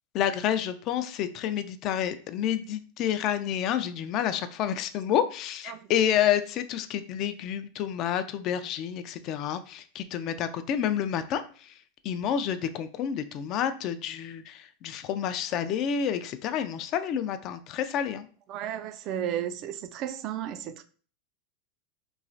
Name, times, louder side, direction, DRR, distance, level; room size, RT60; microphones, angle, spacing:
voice 1, 0.1-11.7 12.0-18.3, left 9 dB, 50° left, 0.3 m, -29 dB
voice 2, 18.5-20.8, right 10 dB, 50° right, 0.3 m, -33 dB
3.0 x 2.3 x 2.5 m
hypercardioid pair, 110°, 0 cm